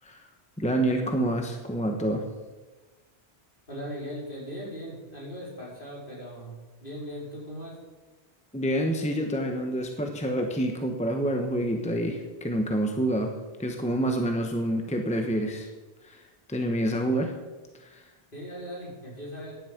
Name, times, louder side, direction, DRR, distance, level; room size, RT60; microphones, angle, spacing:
voice 1, 0.6-2.3 8.5-13.3 13.6-15.7 16.0-16.2 16.5-17.3 17.8-18.0, right 1 dB, 5° left, 3 dB, 1.1 m, -27 dB
voice 2, 3.7-7.8 18.3-19.6, equal, 50° left, -5 dB, 5.0 m, -39 dB
15.5 x 10.5 x 5.2 m, 1.2 s
omnidirectional pair, 1.1 m